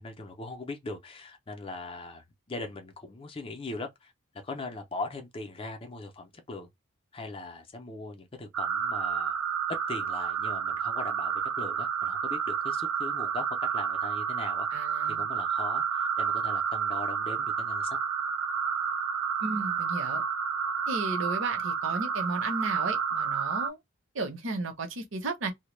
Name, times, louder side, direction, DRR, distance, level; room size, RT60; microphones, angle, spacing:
voice 1, 0.0-4.1 4.4-6.7 7.1-9.3 9.7-13.5 13.7-14.7 15.2-18.0, left 3 dB, 25° left, 0.4 m, -40 dB
sound 1, 8.5-23.7, right 7 dB, 90° right, 0.4 m, -30 dB
voice 2, 14.7-15.3 19.4-20.2 20.9-23.8 24.1-25.5, right 3 dB, 60° right, 0.7 m, -34 dB
2.2 x 2.0 x 3.0 m
head